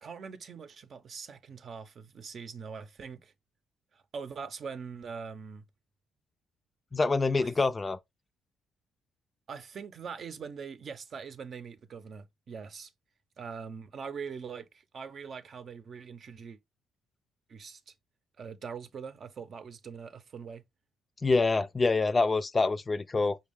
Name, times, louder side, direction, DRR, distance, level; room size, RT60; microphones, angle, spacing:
voice 1, 0.0-3.3 3.9-5.6 7.4-7.5 9.5-12.9 13.4-16.6 17.5-17.9 18.4-20.6, right 6 dB, 55° right, 0.7 m, -42 dB
voice 2, 6.9-8.0 21.2-23.4, left 3 dB, 25° left, 0.4 m, -26 dB
5.3 x 2.3 x 3.5 m
cardioid pair, 90°, 0 cm